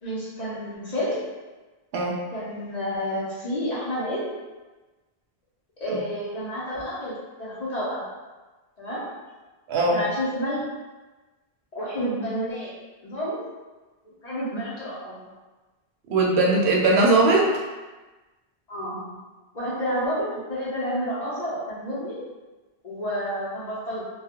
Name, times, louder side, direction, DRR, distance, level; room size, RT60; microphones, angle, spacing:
voice 1, 0.0-1.3 2.3-4.4 5.8-8.1 8.8-9.1 9.9-10.6 11.7-12.7 13.0-13.4 14.2-15.3 18.7-19.2 19.5-22.3 22.8-24.0, equal, 45° left, -8 dB, 0.7 m, -30 dB
voice 2, 9.7-10.0 16.1-17.5, right 2 dB, 80° right, -2 dB, 0.8 m, -19 dB
2.3 x 2.1 x 2.8 m, 1.2 s
omnidirectional pair, 1.1 m